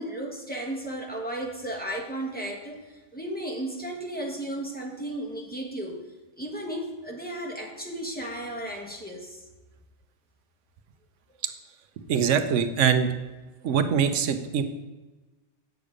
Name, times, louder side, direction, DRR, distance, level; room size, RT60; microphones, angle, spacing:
voice 1, 0.0-6.0 6.4-9.4, right 1 dB, 10° left, -2 dB, 1.4 m, -34 dB
voice 2, 12.1-13.1 13.6-14.6, right 7 dB, 80° right, 9 dB, 1.1 m, -23 dB
8.4 x 6.7 x 5.0 m, 1.2 s
omnidirectional pair, 1.3 m